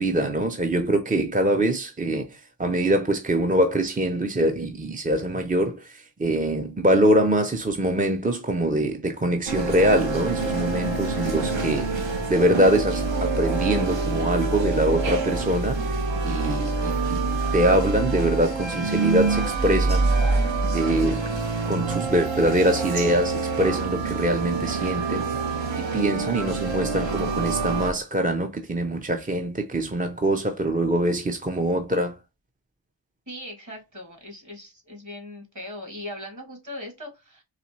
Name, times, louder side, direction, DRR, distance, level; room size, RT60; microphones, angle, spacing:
voice 1, 0.0-17.2 17.5-20.1 20.7-21.2 21.7-25.3 25.8-32.1, right 1 dB, 20° right, 0.4 m, -24 dB
sound 1, 9.5-27.9, right 3 dB, 70° right, 1.0 m, -26 dB
voice 2, 33.3-37.4, left 1 dB, 40° right, 2.1 m, -39 dB
4.1 x 3.2 x 3.0 m
wide cardioid pair, 70°, 46 cm